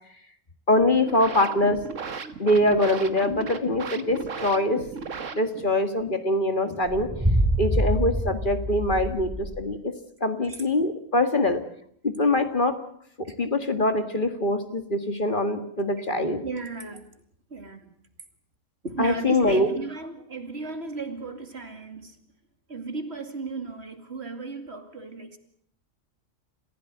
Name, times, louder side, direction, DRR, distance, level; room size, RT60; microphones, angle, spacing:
voice 1, 0.7-1.8 2.4-4.8 5.3-7.1 7.6-9.9 10.2-11.6 12.0-12.8 13.2-16.4 19.0-19.7, left 1 dB, 40° left, 2.0 m, -23 dB
sound 1, 0.8-5.8, right 5 dB, 80° right, 1.8 m, -36 dB
sound 2, 6.8-9.7, right 1 dB, 10° right, 3.1 m, -25 dB
voice 2, 16.4-17.1 17.5-17.9 18.8-22.2 22.7-25.4, right 4 dB, 55° right, 2.7 m, -35 dB
28.5 x 15.5 x 7.9 m
omnidirectional pair, 1.3 m